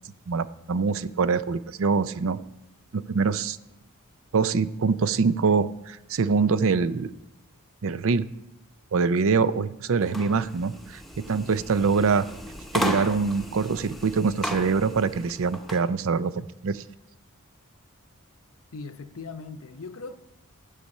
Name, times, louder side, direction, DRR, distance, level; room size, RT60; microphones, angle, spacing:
voice 1, 0.3-2.4 2.9-3.6 4.3-7.1 7.8-8.3 8.9-12.3 12.7-16.8, right 5 dB, 65° right, 0.5 m, -24 dB
sound 1, 10.0-15.9, equal, ahead, 0.9 m, -35 dB
voice 2, 18.7-20.2, left 4 dB, 70° left, 0.8 m, -39 dB
13.5 x 8.2 x 5.5 m
head